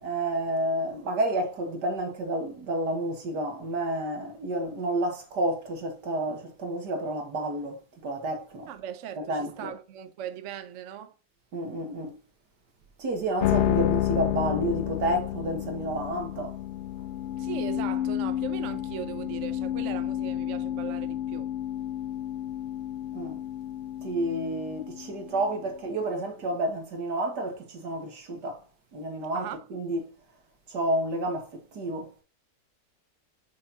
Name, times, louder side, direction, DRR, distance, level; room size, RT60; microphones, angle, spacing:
voice 1, 0.0-8.7 9.2-9.7 11.5-12.2 13.0-16.6 23.1-23.4 24.0-28.6 28.9-30.1 30.7-32.1, right 1 dB, 85° right, 2.4 m, -30 dB
voice 2, 8.7-11.1 17.4-21.5 29.3-29.6, right 9 dB, 55° right, 1.0 m, -38 dB
sound 1, 13.4-25.7, left 12 dB, 85° left, 0.6 m, -31 dB
7.4 x 6.6 x 2.9 m
omnidirectional pair, 1.8 m